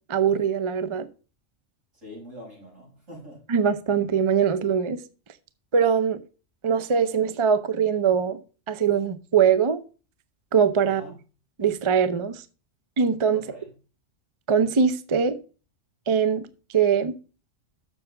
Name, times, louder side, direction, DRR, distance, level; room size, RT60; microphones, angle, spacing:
voice 1, 0.1-1.1 3.5-5.0 5.7-6.2 6.6-8.4 8.7-9.8 10.5-11.0 11.6-12.4 13.0-13.4 14.5-15.4 16.1-16.4 16.7-17.1, right 7 dB, 35° right, 0.5 m, -22 dB
voice 2, 1.9-3.4 10.8-11.1 13.3-13.7, equal, 90° right, 6.5 m, -44 dB
7.0 x 6.9 x 5.7 m
omnidirectional pair, 1.3 m